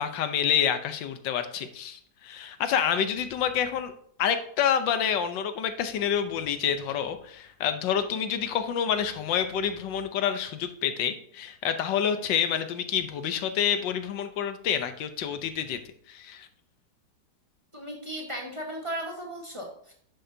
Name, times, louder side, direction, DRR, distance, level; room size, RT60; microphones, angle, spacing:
voice 1, 0.0-3.9 4.2-15.8 16.1-16.5, left 8 dB, 85° left, 9 dB, 1.5 m, -28 dB
voice 2, 17.7-19.9, right 1 dB, 20° right, 0 dB, 1.2 m, -36 dB
11.0 x 7.7 x 2.7 m, 0.62 s
omnidirectional pair, 1.9 m